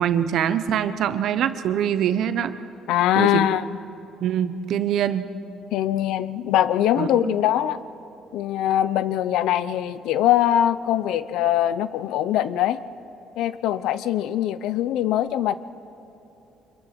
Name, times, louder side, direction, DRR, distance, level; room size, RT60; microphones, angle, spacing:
voice 1, 0.0-2.6 3.2-3.5 4.2-5.3 7.0-7.3, right 9 dB, 70° right, 11 dB, 1.0 m, -24 dB
voice 2, 2.9-3.8 5.7-7.8 8.3-12.8 13.4-15.5, left 11 dB, 85° left, 15 dB, 0.7 m, -22 dB
25.0 x 22.0 x 6.0 m, 3.0 s
cardioid pair, 110°, 0 cm